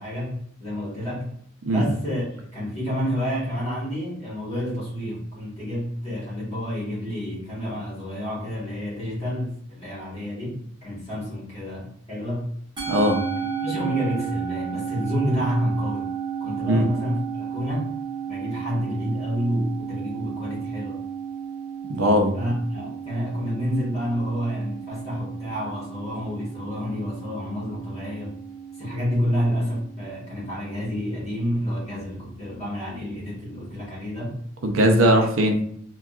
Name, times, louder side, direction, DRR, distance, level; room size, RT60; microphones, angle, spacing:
voice 1, 0.0-1.3 1.7-12.5 13.6-16.1 16.4-18.0 18.3-21.0 22.3-28.4 28.8-34.4, equal, 30° left, -7 dB, 1.4 m, -29 dB
Musical instrument, 12.8-31.3, right 7 dB, 20° right, 1.0 m, -33 dB
voice 2, 12.9-13.2 16.6-16.9 21.9-22.3 34.6-35.6, equal, 75° right, 3 dB, 0.5 m, -19 dB
3.5 x 2.2 x 2.4 m, 0.65 s
head